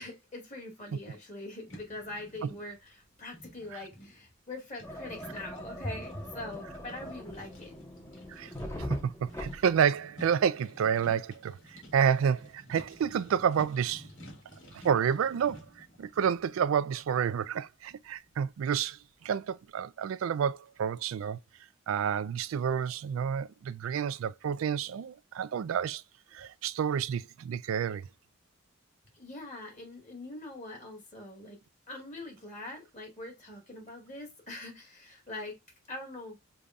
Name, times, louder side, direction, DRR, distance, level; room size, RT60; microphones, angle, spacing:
voice 1, 0.0-7.8 29.1-31.6 31.9-35.6 35.9-36.4, left 2 dB, 35° left, 2.0 m, -43 dB
sound 1, 1.7-19.3, equal, 65° left, 1.8 m, -53 dB
sound 2, 4.8-9.8, equal, 15° left, 0.8 m, -42 dB
voice 2, 8.8-14.1 14.7-19.0 19.2-21.4 21.9-26.0 26.3-28.1, right 7 dB, 90° right, 0.3 m, -29 dB
6.8 x 2.3 x 2.4 m
head